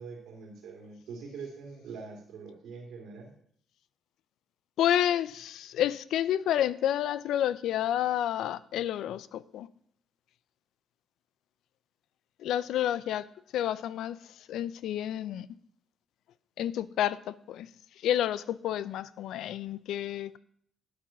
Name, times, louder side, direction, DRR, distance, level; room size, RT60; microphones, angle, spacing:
voice 1, 0.0-3.3, right 5 dB, 80° right, 2.7 m, -44 dB
voice 2, 4.8-9.7 12.4-13.3 13.5-14.2 14.5-15.5 16.6-17.7 18.0-20.4, left 11 dB, 80° left, 0.5 m, -29 dB
12.0 x 6.1 x 5.8 m
cardioid pair, 90°, 0 cm